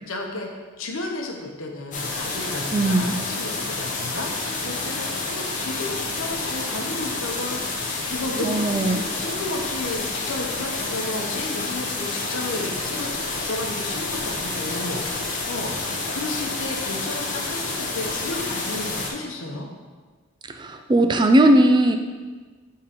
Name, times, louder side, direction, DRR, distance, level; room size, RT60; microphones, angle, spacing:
voice 1, 0.1-0.5 0.8-13.1 13.4-19.7, left 2 dB, 70° left, 1 dB, 0.9 m, -33 dB
sound 1, 1.9-19.1, left 3 dB, 35° left, 0.8 m, -29 dB
voice 2, 2.7-3.2 8.4-9.0 20.5-22.0, right 1 dB, 20° right, 6 dB, 0.3 m, -18 dB
6.7 x 3.7 x 4.3 m, 1.4 s
head